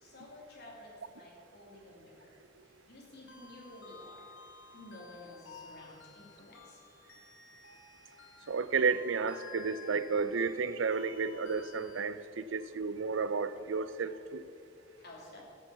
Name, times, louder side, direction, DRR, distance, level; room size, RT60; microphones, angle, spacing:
voice 1, 0.0-2.3 2.9-4.2 4.7-6.8 15.0-15.4, left 1 dB, 55° left, -3 dB, 2.9 m, -52 dB
sound 1, 3.3-12.0, left 5 dB, 80° left, 1.6 m, -53 dB
voice 2, 8.5-14.4, right 5 dB, 70° right, 14 dB, 0.5 m, -32 dB
13.0 x 6.9 x 7.0 m, 2.4 s
head